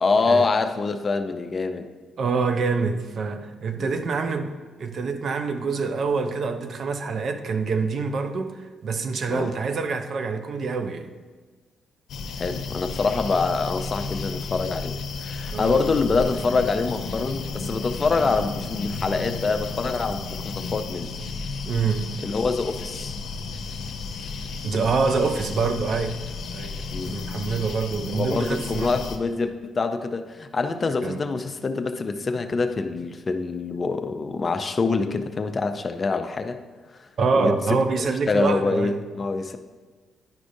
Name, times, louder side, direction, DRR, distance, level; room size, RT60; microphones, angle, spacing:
voice 1, 0.0-1.9 3.8-4.1 9.3-9.5 12.4-21.1 22.2-23.2 26.9-27.2 28.1-36.6 37.0-37.1 37.4-37.8 38.3-39.6, left 4 dB, 35° left, 8 dB, 0.5 m, -25 dB
voice 2, 2.2-4.5 4.8-11.1 15.5-15.8 21.7-22.2 24.6-26.2 26.5-26.8 27.0-28.9 31.0-31.2 37.2-39.0, right 4 dB, 55° right, 8 dB, 0.5 m, -26 dB
sound 1, 12.1-29.2, left 4 dB, 75° left, 0.7 m, -33 dB
10.5 x 4.9 x 2.7 m, 1.3 s
cardioid pair, 90°, 0 cm